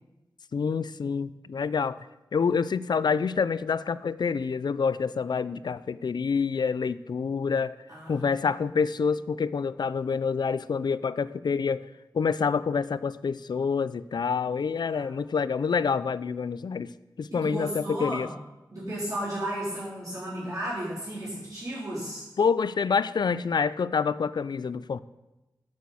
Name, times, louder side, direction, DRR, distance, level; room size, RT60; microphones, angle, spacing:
voice 1, 0.5-2.0 2.3-7.7 8.1-11.9 12.1-16.9 17.2-18.3 22.4-25.0, left 5 dB, 70° left, 17 dB, 0.3 m, -27 dB
voice 2, 7.9-8.4 14.9-15.1 17.3-18.3 18.7-22.2, right 1 dB, 45° right, -11 dB, 3.8 m, -34 dB
9.2 x 6.2 x 7.0 m, 1.0 s
wide cardioid pair, 95°, 8 cm